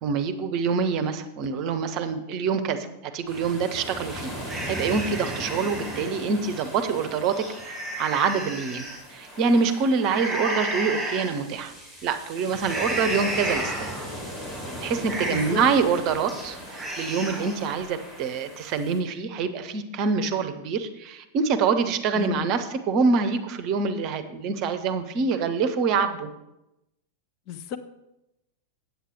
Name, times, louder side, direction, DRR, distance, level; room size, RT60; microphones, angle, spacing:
voice 1, 0.0-11.7 12.0-13.9 14.8-26.3, right 5 dB, 40° right, 9 dB, 0.8 m, -26 dB
sound 1, 3.3-19.0, equal, 20° left, 3.4 m, -39 dB
sound 2, 4.5-6.1 6.6-6.7 7.2-9.0 10.0-11.3 11.7-12.1 12.6-14.1 14.5-14.6 15.0-15.7 16.1-16.4 16.7-17.6, right 1 dB, 5° right, 4.1 m, -32 dB
voice 2, 15.3-15.6 22.1-22.5 27.5-27.8, left 9 dB, 40° left, 9 dB, 0.6 m, -33 dB
8.3 x 8.2 x 4.6 m, 0.90 s
figure-of-eight pair, 90°, 0 cm